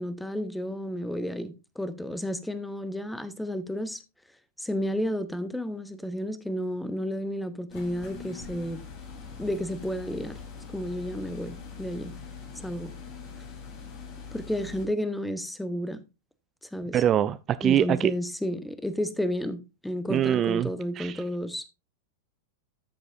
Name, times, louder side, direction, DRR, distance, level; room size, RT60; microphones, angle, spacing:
voice 1, 0.0-4.0 4.6-8.8 9.4-10.4 10.7-12.1 12.6-12.9 14.3-16.0 16.7-17.0 17.6-21.7, equal, 5° left, 1.0 m, -32 dB
sound 1, 7.7-14.9, left 5 dB, 40° left, 2.9 m, -43 dB
voice 2, 16.9-18.1 20.1-20.7 21.0-21.2, right 10 dB, 30° right, 0.4 m, -24 dB
13.0 x 7.1 x 2.6 m
figure-of-eight pair, 95°, 0 cm